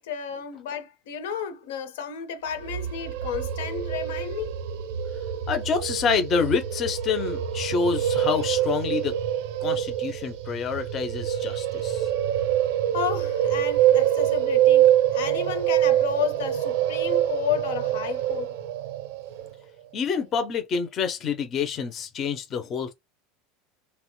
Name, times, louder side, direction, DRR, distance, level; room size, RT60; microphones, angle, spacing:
voice 1, 0.0-4.6 12.9-18.5, left 8 dB, 85° left, 0.7 m, -32 dB
sound 1, 2.5-19.5, right 11 dB, 70° right, 0.4 m, -25 dB
voice 2, 5.5-9.2 9.6-12.1 19.9-22.9, left 6 dB, 25° left, 0.4 m, -27 dB
2.9 x 2.1 x 3.0 m
supercardioid pair, 165°, 0 cm